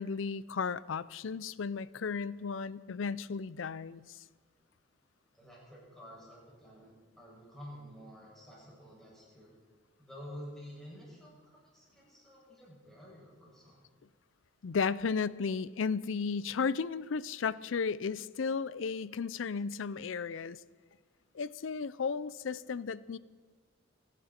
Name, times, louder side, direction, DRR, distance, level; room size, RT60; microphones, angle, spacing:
voice 1, 0.0-4.2 14.6-20.6 21.3-23.2, left 5 dB, 80° left, 0.5 m, -34 dB
voice 2, 5.3-9.5 10.0-13.9, equal, ahead, 6.5 m, -50 dB
27.5 x 11.0 x 4.4 m
head